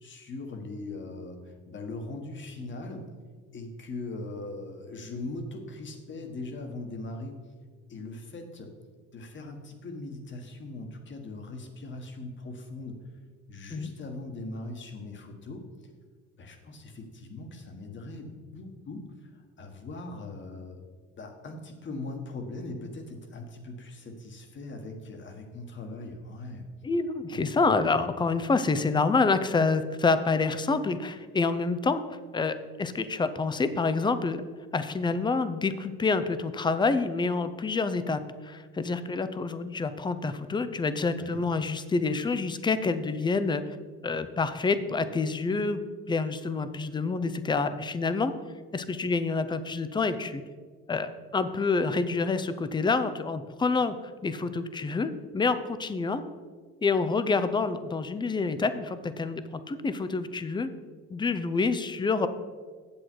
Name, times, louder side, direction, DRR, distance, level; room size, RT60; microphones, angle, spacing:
voice 1, 0.0-3.1 3.5-7.4 7.9-8.7 9.1-13.0 13.5-15.6 16.4-20.8 21.2-26.7 27.3-27.5 41.2-41.4, left 2 dB, 40° left, 5 dB, 1.6 m, -40 dB
voice 2, 26.8-32.0 32.3-34.4 34.7-43.6 44.0-45.8 46.1-48.3 48.7-50.4 50.9-54.0 54.2-56.2 56.8-60.7 61.1-62.3, left 4 dB, 15° left, 12 dB, 0.6 m, -27 dB
8.8 x 7.6 x 4.6 m, 1.5 s
supercardioid pair, 95°, 30 cm